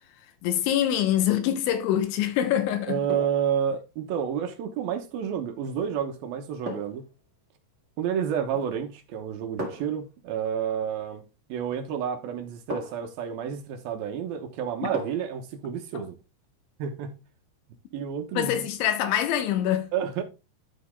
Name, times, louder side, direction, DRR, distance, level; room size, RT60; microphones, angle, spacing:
voice 1, 0.4-3.0 14.8-14.9 15.9-16.1 18.3-19.9, left 11 dB, 80° left, 3.4 m, -25 dB
sound 1, 1.5-1.9 3.1-3.5 5.6-5.8 6.6-7.1 8.4-8.8 9.6-10.0 11.7-11.8 12.7-13.2 14.9-15.4 15.8-15.9, equal, 25° right, 1.8 m, -37 dB
voice 2, 2.9-7.0 8.0-11.2 11.5-16.2 16.8-17.1 17.9-18.6 19.9-20.2, right 8 dB, 70° right, 2.4 m, -30 dB
12.5 x 4.2 x 3.6 m
omnidirectional pair, 5.4 m